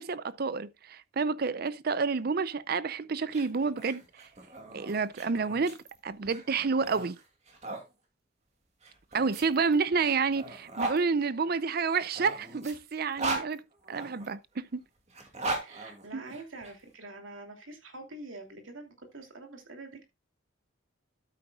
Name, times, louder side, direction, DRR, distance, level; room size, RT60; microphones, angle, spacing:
voice 1, 0.0-4.3 4.7-5.8 6.0-7.2 9.1-13.6 13.9-14.8 16.1-16.2, right 5 dB, 50° right, 0.5 m, -29 dB
sound 1, 3.2-7.8 8.8-11.0 11.9-14.3 15.1-16.7, right 2 dB, 35° right, 2.5 m, -38 dB
voice 2, 15.6-20.0, right 2 dB, 85° right, 2.8 m, -45 dB
12.5 x 8.9 x 2.4 m
head